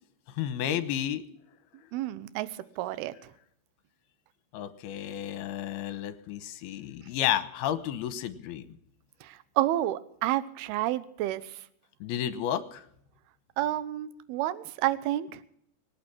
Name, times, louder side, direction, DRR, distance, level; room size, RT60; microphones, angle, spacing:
voice 1, 0.3-1.2 4.5-8.8 12.0-12.8, left 11 dB, 75° left, 13 dB, 2.9 m, -32 dB
voice 2, 1.9-2.5 2.8-3.1 9.2-11.6 13.6-15.4, right 14 dB, 75° right, 15 dB, 2.7 m, -30 dB
25.0 x 8.8 x 6.0 m, 0.70 s
omnidirectional pair, 4.7 m